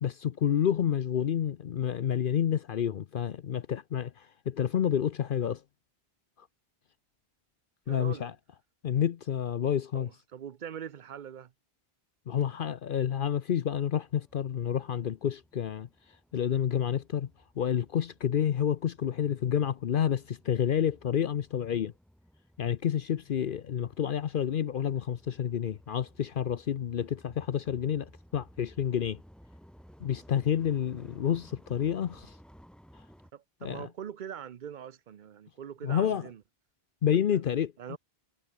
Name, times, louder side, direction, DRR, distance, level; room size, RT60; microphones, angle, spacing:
voice 1, 0.0-5.6 7.9-8.3 8.8-10.1 12.3-15.9 16.3-17.3 17.6-21.9 22.6-29.2 30.0-32.3 33.6-33.9 35.8-36.3 37.0-38.0, left 9 dB, 60° left, 0.8 m, -29 dB
voice 2, 7.9-8.3 9.9-11.5 33.3-36.4 37.3-37.4 37.8-38.0, right 9 dB, 55° right, 0.8 m, -42 dB
sound 1, 14.0-33.3, equal, ahead, 1.7 m, -57 dB
omnidirectional pair, 1.0 m